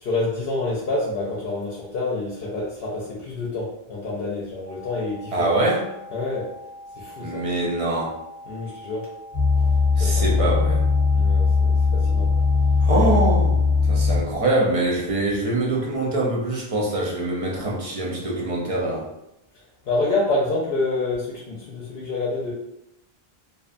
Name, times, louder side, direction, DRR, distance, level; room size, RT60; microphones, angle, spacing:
voice 1, 0.0-5.6 6.1-6.5 7.0-7.4 8.5-9.1 10.0-10.6 11.1-12.3 19.9-22.5, left 2 dB, 65° left, -5 dB, 0.8 m, -27 dB
sound 1, 4.7-13.5, left 1 dB, 45° left, 0.9 m, -42 dB
voice 2, 5.3-5.8 7.2-8.2 10.0-10.8 12.8-13.6 13.9-19.1, right 2 dB, 45° right, -2 dB, 0.5 m, -24 dB
sound 2, 9.3-14.5 15.1-15.2, left 4 dB, 20° left, 0.6 m, -19 dB
2.6 x 2.1 x 2.5 m, 0.85 s
omnidirectional pair, 1.0 m